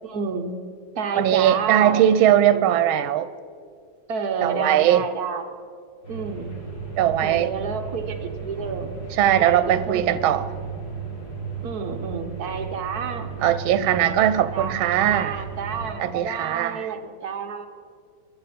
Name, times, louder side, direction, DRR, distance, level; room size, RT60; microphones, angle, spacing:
voice 1, 0.0-0.6 0.9-2.0 2.5-2.7 4.1-5.5 6.1-6.5 7.2-9.0 9.4-10.3 11.6-14.1 14.5-14.8 15.0-17.7, right 5 dB, 55° right, 5 dB, 1.3 m, -30 dB
voice 2, 1.1-3.3 4.4-5.0 7.0-7.5 9.2-10.4 13.4-15.4 16.0-16.9, right 11 dB, 90° right, 14 dB, 1.4 m, -20 dB
sound 1, 6.0-15.9, right 5 dB, 50° left, 5.2 m, -35 dB
21.5 x 12.0 x 4.3 m, 2.2 s
omnidirectional pair, 2.2 m